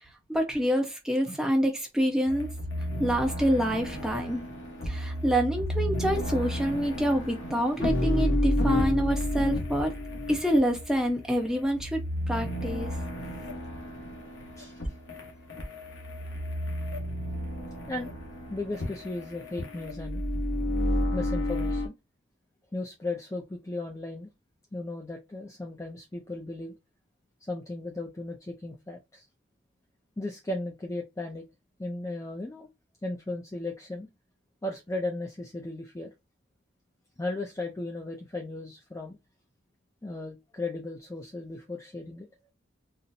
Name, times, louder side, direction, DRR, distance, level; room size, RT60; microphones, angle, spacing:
voice 1, 0.3-2.5 3.0-4.5 4.9-9.9 10.3-12.9, equal, 5° right, 0.7 m, -27 dB
sound 1, 2.3-21.9, left 1 dB, 70° left, 1.0 m, -31 dB
voice 2, 18.5-20.2 21.1-21.9 22.7-24.3 24.7-26.8 27.4-29.3 30.2-31.4 31.8-32.7 33.0-34.1 34.6-36.1 37.2-39.2 40.0-42.3, left 2 dB, 15° left, 0.4 m, -36 dB
4.0 x 2.0 x 2.6 m
head